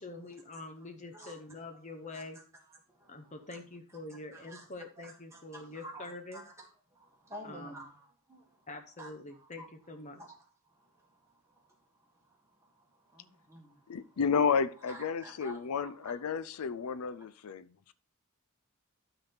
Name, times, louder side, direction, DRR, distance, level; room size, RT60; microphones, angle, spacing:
voice 1, 0.0-2.4 3.1-6.4 7.4-7.8 8.7-10.2, left 2 dB, 30° left, 0.8 m, -45 dB
voice 2, 2.7-3.6 3.9-4.7 5.0-8.7 9.0-9.7 10.1-14.2 14.8-16.1 17.0-17.1, right 1 dB, 15° right, 1.7 m, -52 dB
voice 3, 13.9-17.9, left 6 dB, 85° left, 0.5 m, -32 dB
12.0 x 4.1 x 4.2 m
head